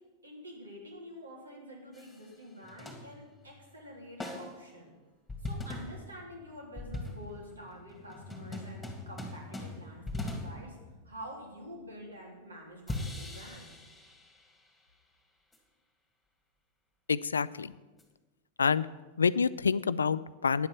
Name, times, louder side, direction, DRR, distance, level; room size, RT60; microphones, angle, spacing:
voice 1, 0.2-4.9 5.4-10.8 11.0-13.8, equal, 75° right, -1 dB, 3.1 m, -47 dB
sound 1, 1.9-2.3 2.6-3.6 4.2-4.6 5.3-11.5 12.9-14.7 15.5-15.6 18.0-18.1, left 2 dB, 10° left, 2.3 m, -41 dB
voice 2, 17.1-17.7 18.6-18.9 19.2-20.7, left 5 dB, 75° left, 18 dB, 0.3 m, -27 dB
10.5 x 8.0 x 6.9 m, 1.2 s
figure-of-eight pair, 90°, 0 cm